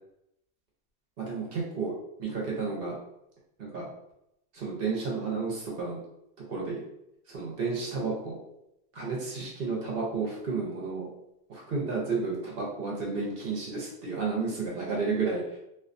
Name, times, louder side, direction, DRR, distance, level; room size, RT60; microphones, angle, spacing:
voice 1, 1.2-3.0 3.6-3.9 4.5-6.0 6.5-6.8 7.3-8.4 8.9-11.1 11.5-15.6, right 4 dB, 60° right, -3 dB, 0.9 m, -32 dB
2.5 x 2.2 x 2.5 m, 0.82 s
omnidirectional pair, 1.1 m